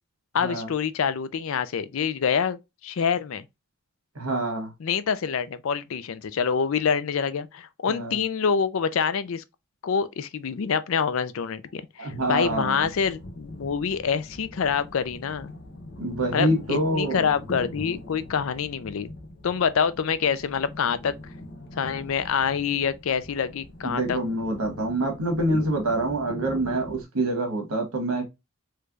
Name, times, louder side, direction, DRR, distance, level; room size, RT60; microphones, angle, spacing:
voice 1, 0.3-3.4 4.8-9.4 9.8-15.5 16.3-19.1 19.4-21.2 21.8-24.2, left 6 dB, 65° left, 0.4 m, -26 dB
voice 2, 4.1-4.7 7.9-8.2 12.0-12.9 16.0-17.2 23.8-28.2, right 2 dB, 75° right, 1.3 m, -26 dB
sound 1, 12.1-27.0, left 1 dB, 50° left, 1.0 m, -41 dB
3.3 x 3.2 x 2.4 m
head